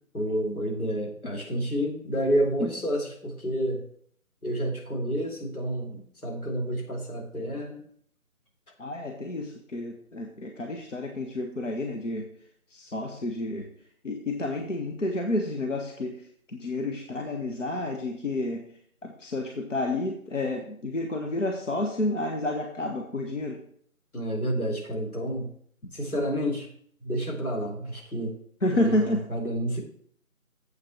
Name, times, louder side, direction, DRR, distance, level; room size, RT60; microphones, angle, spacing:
voice 1, 0.1-3.8 4.4-7.8 24.1-25.5 25.9-26.7 27.0-28.3 28.7-29.8, equal, 90° left, -1 dB, 3.8 m, -29 dB
voice 2, 8.8-12.3 12.7-13.7 14.0-16.2 16.5-18.6 19.0-23.6 28.6-29.2, left 2 dB, 60° left, 3 dB, 1.3 m, -30 dB
7.8 x 6.1 x 6.0 m, 0.63 s
figure-of-eight pair, 170°, 42 cm